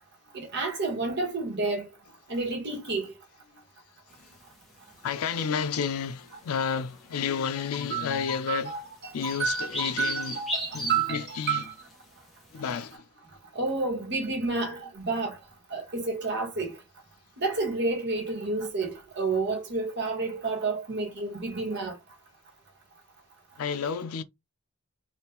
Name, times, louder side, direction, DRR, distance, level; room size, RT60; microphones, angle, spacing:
voice 1, 0.3-1.9 2.3-3.1 7.9-8.8 9.2-11.6 13.5-15.4 15.7-16.7 17.4-22.0, right 3 dB, 55° right, 1.4 m, -30 dB
sound 1, 4.1-12.9, left 1 dB, ahead, 1.1 m, -39 dB
voice 2, 5.0-8.8 9.1-10.4 10.7-11.6 12.5-13.1 23.6-24.2, left 6 dB, 90° left, 0.4 m, -31 dB
3.5 x 2.7 x 2.9 m
head